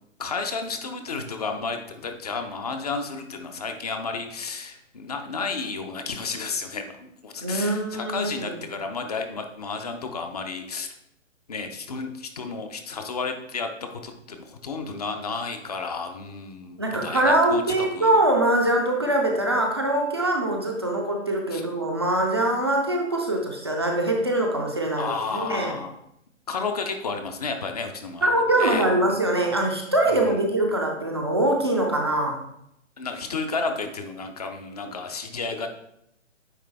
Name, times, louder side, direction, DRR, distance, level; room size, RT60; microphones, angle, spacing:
voice 1, 0.2-10.9 11.5-18.2 21.5-21.6 25.0-25.9 26.5-28.3 28.6-29.2 30.0-30.4 33.0-35.7, left 4 dB, 30° left, 6 dB, 0.5 m, -32 dB
voice 2, 7.4-8.6 16.8-25.8 28.2-32.4, right 1 dB, 20° right, 1 dB, 0.4 m, -23 dB
9.2 x 3.3 x 3.3 m, 0.78 s
hypercardioid pair, 150°, 38 cm